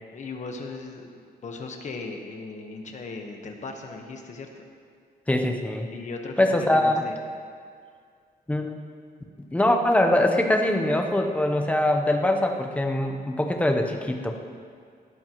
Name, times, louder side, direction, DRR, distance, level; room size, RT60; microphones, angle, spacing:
voice 1, 0.1-4.6 5.9-7.2, left 3 dB, 45° left, 3 dB, 1.2 m, -37 dB
voice 2, 5.3-5.9 6.4-7.0 8.5-8.8 9.5-14.6, left 1 dB, 10° left, 3 dB, 0.8 m, -23 dB
18.5 x 13.0 x 3.1 m, 2.2 s
wide cardioid pair, 180°, 17 cm